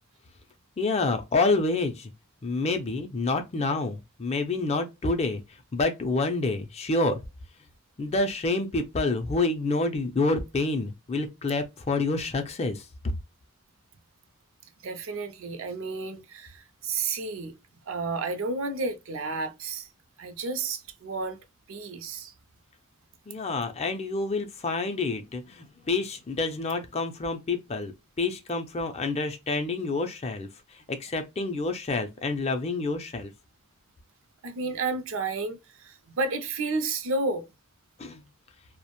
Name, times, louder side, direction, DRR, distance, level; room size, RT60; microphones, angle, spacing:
voice 1, 0.8-2.1 2.4-5.4 5.7-7.2 8.0-12.9 23.3-30.5 30.9-33.3 38.0-38.2, left 3 dB, 30° left, 0.4 m, -28 dB
voice 2, 14.8-17.5 17.9-19.9 20.2-21.4 21.7-22.3 34.4-37.5, right 3 dB, 65° right, 0.5 m, -31 dB
2.4 x 2.1 x 2.8 m
head